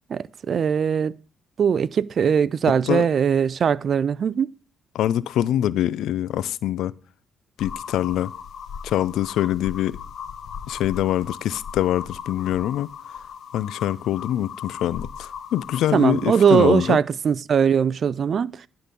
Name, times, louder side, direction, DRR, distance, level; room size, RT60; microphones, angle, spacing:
voice 1, 0.1-1.1 1.6-4.5 15.9-18.6, right 7 dB, 50° right, 0.4 m, -20 dB
voice 2, 4.9-6.9 7.6-8.3 8.8-10.0 10.7-12.9 13.5-17.0, left 12 dB, 80° left, 0.4 m, -24 dB
sound 1, 7.6-17.0, left 7 dB, 65° left, 0.8 m, -38 dB
10.5 x 3.9 x 6.7 m
cardioid pair, 90°, 0 cm